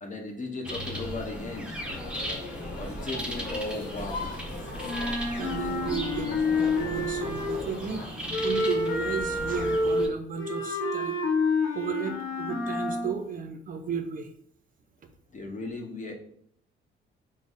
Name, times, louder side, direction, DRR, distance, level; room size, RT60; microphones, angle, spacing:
voice 1, 0.0-1.8 2.8-4.4 15.3-16.1, left 2 dB, 40° left, 2 dB, 0.8 m, -36 dB
sound 1, 0.6-10.1, equal, 5° right, 0.7 m, -37 dB
sound 2, 1.8-8.1, left 3 dB, 65° left, 1.0 m, -40 dB
Wind instrument woodwind instrument, 4.8-7.7 8.3-13.1, left 2 dB, 90° left, 0.8 m, -28 dB
voice 2, 5.3-11.2 11.7-14.3, right 6 dB, 45° right, 7 dB, 0.4 m, -34 dB
3.9 x 2.0 x 3.6 m, 0.68 s
cardioid pair, 90°, 20 cm